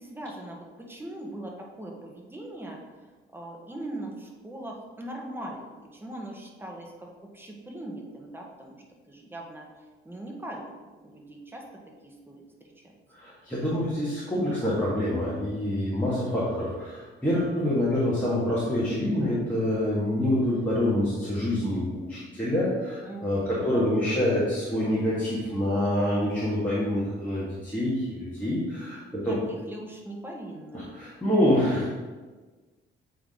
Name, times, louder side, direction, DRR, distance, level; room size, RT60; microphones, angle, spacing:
voice 1, 0.0-13.0 23.0-23.8 29.3-30.9, right 1 dB, 10° right, 0 dB, 1.2 m, -41 dB
voice 2, 13.1-29.4 30.7-31.9, left 1 dB, 10° left, -10 dB, 2.0 m, -26 dB
7.8 x 3.8 x 3.8 m, 1.3 s
cardioid pair, 90°, 20 cm